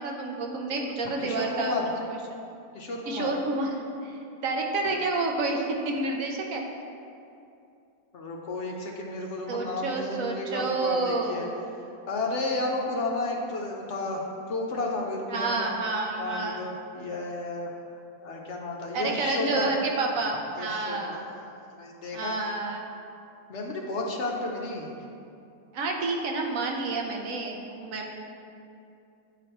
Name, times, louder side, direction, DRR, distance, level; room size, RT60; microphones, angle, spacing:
voice 1, 0.0-2.4 3.1-3.7 4.0-6.6 9.5-11.5 15.3-16.7 18.9-21.2 22.1-22.8 25.7-28.1, right 3 dB, 70° right, 1 dB, 1.1 m, -29 dB
voice 2, 1.2-1.9 2.7-3.3 8.1-11.5 12.1-15.7 16.2-17.7 18.2-19.7 20.6-22.4 23.5-24.9, left 2 dB, 60° left, -1 dB, 0.9 m, -32 dB
9.2 x 5.0 x 3.0 m, 2.6 s
omnidirectional pair, 1.5 m